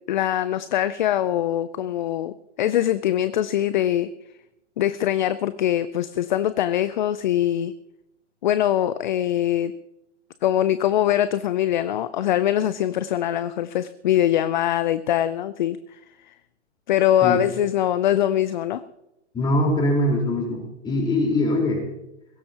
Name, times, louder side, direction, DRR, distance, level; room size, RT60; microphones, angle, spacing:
voice 1, 0.1-4.1 4.8-7.7 8.4-9.7 10.4-16.0 16.3-16.4 16.9-18.8, left 11 dB, 40° left, 14 dB, 0.6 m, -23 dB
voice 2, 19.3-21.8, left 1 dB, 10° left, -1 dB, 4.4 m, -22 dB
21.5 x 16.5 x 3.0 m, 0.90 s
hypercardioid pair, 140°, 36 cm